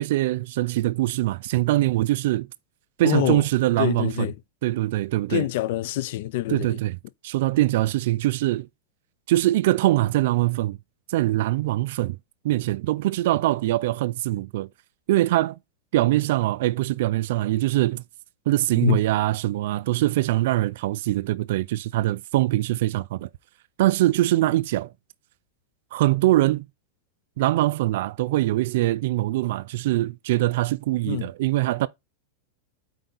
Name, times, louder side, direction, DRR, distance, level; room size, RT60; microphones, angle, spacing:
voice 1, 0.0-2.5 3.0-4.3 4.6-5.5 6.5-7.0 7.2-8.7 9.3-10.8 11.1-12.2 12.4-14.7 15.1-15.6 15.9-18.0 18.5-23.3 23.8-24.9 25.9-26.7 27.4-31.9, right 16 dB, 55° right, 0.3 m, -23 dB
voice 2, 3.0-3.4 3.8-4.4 5.3-6.8 18.8-19.0 31.1-31.3, left 15 dB, 55° left, 0.4 m, -25 dB
8.0 x 4.7 x 3.9 m
supercardioid pair, 170°, 0 cm